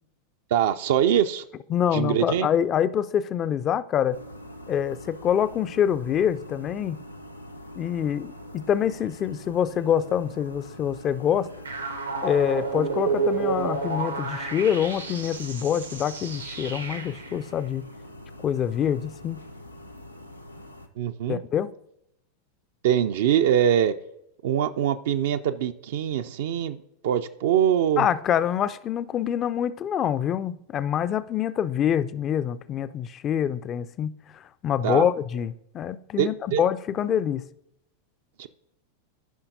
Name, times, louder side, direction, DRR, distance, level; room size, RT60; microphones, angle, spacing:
voice 1, 0.5-1.4 1.9-2.5 21.0-21.4 22.8-23.9 24.4-26.8 27.0-28.1 34.8-35.1 36.2-36.6 38.4-38.5, right 10 dB, 55° right, 0.4 m, -23 dB
voice 2, 1.7-4.2 4.7-7.0 7.8-11.5 12.2-17.9 18.4-19.4 21.3-21.7 28.0-34.1 34.6-37.5, left 9 dB, 30° left, 0.4 m, -25 dB
sound 1, 4.1-20.9, equal, 85° left, 0.6 m, -44 dB
sound 2, 11.6-17.3, right 4 dB, 80° right, 0.9 m, -30 dB
14.0 x 5.6 x 2.6 m
figure-of-eight pair, 90°, 0 cm